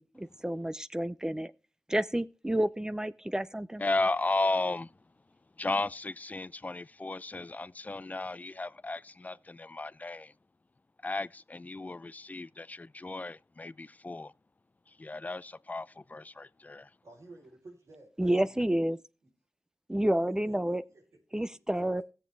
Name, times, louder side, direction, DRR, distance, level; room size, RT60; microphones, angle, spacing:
voice 1, 0.0-1.5 1.9-3.8 18.2-19.0 19.9-20.8 21.3-22.0, right 1 dB, 15° right, 0.6 m, -30 dB
voice 2, 3.8-4.9 5.6-10.3 11.0-14.3 14.9-16.9, left 2 dB, 30° left, 0.5 m, -34 dB
voice 3, 17.0-18.7 20.4-21.4 21.7-21.8, right 2 dB, 80° right, 3.8 m, -54 dB
17.0 x 7.3 x 3.3 m
cardioid pair, 60°, 5 cm